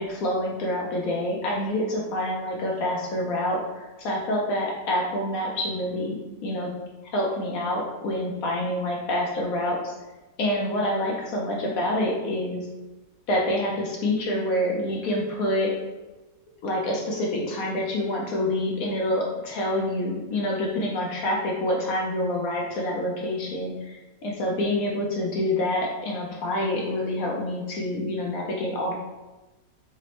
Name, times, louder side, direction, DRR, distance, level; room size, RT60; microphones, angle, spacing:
voice 1, 0.0-6.1 6.4-6.7 7.1-9.9 10.4-12.6 13.3-15.7 16.6-28.9, left 1 dB, 65° left, -2 dB, 1.0 m, -27 dB
4.9 x 2.1 x 2.9 m, 1.1 s
omnidirectional pair, 1.9 m